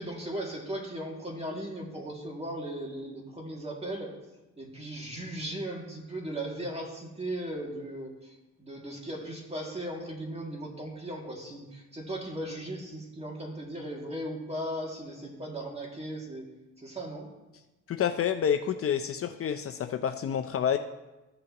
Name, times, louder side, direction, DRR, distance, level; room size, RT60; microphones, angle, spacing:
voice 1, 0.0-4.1 4.6-16.5 16.8-17.3, right 1 dB, 20° right, -1 dB, 2.2 m, -37 dB
voice 2, 17.9-20.8, left 8 dB, 50° left, 7 dB, 0.5 m, -28 dB
14.0 x 6.8 x 2.9 m, 1.0 s
cardioid pair, 90°, 30 cm